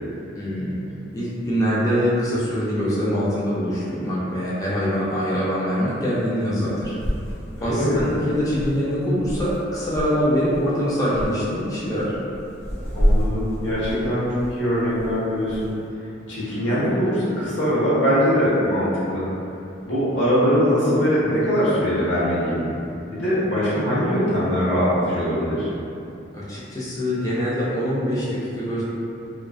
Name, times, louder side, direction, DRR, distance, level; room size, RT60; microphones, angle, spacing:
voice 1, 0.3-0.8 1.1-6.9 7.6-12.1 26.3-28.8, equal, 20° left, -9 dB, 0.3 m, -24 dB
sound 1, 4.3-4.4 6.2-6.3 6.6-10.1 10.4-10.7 11.1-11.4 11.8-15.7, equal, 35° left, 1.0 m, -28 dB
voice 2, 7.6-8.1 12.9-15.7 16.3-19.2 19.8-22.6 23.0-25.7, equal, 80° left, -9 dB, 0.9 m, -22 dB
2.3 x 2.3 x 2.3 m, 2.6 s
head